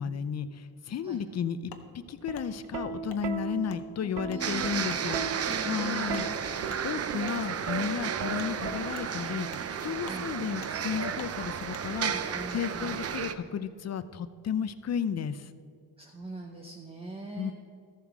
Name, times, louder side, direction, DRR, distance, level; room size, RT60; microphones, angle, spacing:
voice 1, 0.0-5.2 5.6-6.3 6.6-9.5 9.8-12.1 12.5-15.5 17.4-17.5, left 7 dB, 40° left, 13 dB, 0.6 m, -33 dB
Wood, 1.7-1.9 2.3-2.5 3.1-3.2 3.7-3.8 4.3-4.4 4.9-5.0 5.5-5.6 6.1-6.3 6.7-6.8 7.2-7.4 7.8-7.9 8.4-8.5 8.9-9.1 9.5-9.7 10.0-10.2 10.6-10.7 11.2-11.3 11.7-11.9, left 9 dB, 85° left, 1.0 m, -48 dB
Plucked string instrument, 2.1-9.3 10.4-10.7, right 5 dB, 90° right, 0.8 m, -38 dB
voice 2, 3.9-4.9 5.4-6.3 10.0-10.3 12.1-13.1 16.0-17.5, right 2 dB, 15° right, 2 dB, 0.9 m, -42 dB
sound 1, 4.4-13.4, right 7 dB, 40° right, 0.6 m, -33 dB
13.5 x 7.3 x 4.8 m, 2.3 s
cardioid pair, 90°, 39 cm